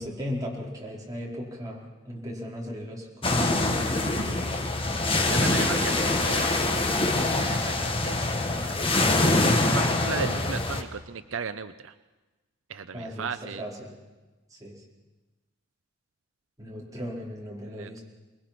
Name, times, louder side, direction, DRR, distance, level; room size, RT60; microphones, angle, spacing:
voice 1, 0.0-3.8 12.9-13.9 14.5-14.8 16.6-18.0, equal, 20° right, -4 dB, 4.7 m, -37 dB
sound 1, 3.2-10.8, left 2 dB, 25° left, 1.5 m, -24 dB
voice 2, 3.9-4.7 5.3-6.6 7.4-8.7 9.6-11.9 12.7-13.6 17.7-18.0, right 6 dB, 80° right, 11 dB, 0.6 m, -36 dB
24.5 x 21.0 x 6.0 m, 1.2 s
head